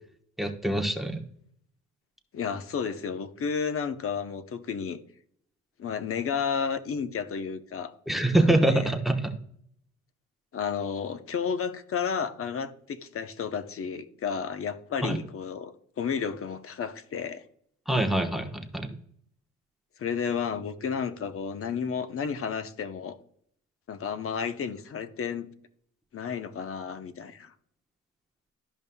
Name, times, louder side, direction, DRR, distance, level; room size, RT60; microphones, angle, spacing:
voice 1, 0.4-1.2 8.1-9.3 15.0-15.2 17.9-18.9, right 1 dB, ahead, 1.0 m, -25 dB
voice 2, 2.3-5.0 5.8-7.9 8.3-8.9 10.5-17.4 20.0-23.2 23.9-25.5 26.1-27.5, left 6 dB, 45° left, 0.8 m, -32 dB
12.5 x 5.3 x 2.2 m
cardioid pair, 90°, 30 cm